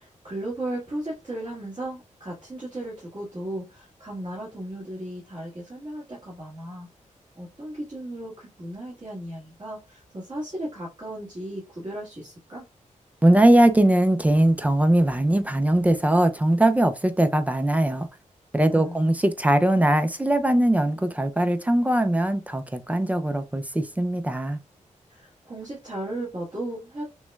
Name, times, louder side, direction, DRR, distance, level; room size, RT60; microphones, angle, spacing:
voice 1, 0.0-6.9 7.4-12.7 18.7-19.2 25.1-27.0, right 1 dB, 35° right, 1.4 m, -35 dB
voice 2, 13.2-18.1 18.5-24.6, right 1 dB, 10° right, 0.3 m, -20 dB
6.0 x 2.1 x 2.2 m
wide cardioid pair, 125°, 13 cm